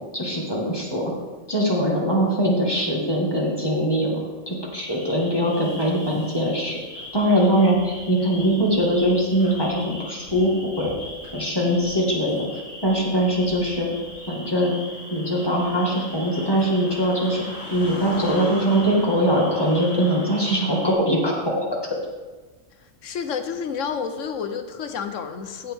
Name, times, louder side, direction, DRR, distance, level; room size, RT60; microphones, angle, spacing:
voice 1, 0.1-1.0 1.5-10.5 10.8-10.9 11.3-13.9 14.3-14.7 15.1-17.4 17.7-21.7, equal, 20° left, -3 dB, 1.9 m, -22 dB
sound 1, 4.7-20.9, left 1 dB, 45° left, 3.7 m, -39 dB
voice 2, 23.0-25.7, left 6 dB, 80° left, 8 dB, 1.2 m, -30 dB
16.0 x 5.8 x 3.6 m, 1.3 s
omnidirectional pair, 1.3 m